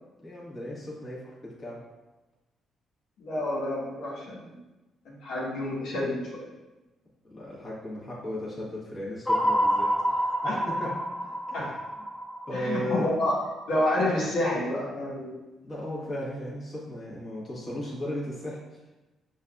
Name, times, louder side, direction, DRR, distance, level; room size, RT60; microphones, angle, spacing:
voice 1, 0.2-1.8 7.2-10.9 11.5-11.7 12.5-13.1 15.6-18.6, left 1 dB, 30° left, -7 dB, 1.4 m, -36 dB
voice 2, 3.2-4.6 5.2-6.4 10.4-10.9 11.5-11.7 12.5-13.3 13.7-15.3, left 1 dB, 80° left, -7 dB, 1.2 m, -29 dB
sound 1, 9.3-13.5, equal, 10° left, 0.4 m, -28 dB
5.5 x 2.6 x 2.3 m, 1.1 s
cardioid pair, 90°, 0 cm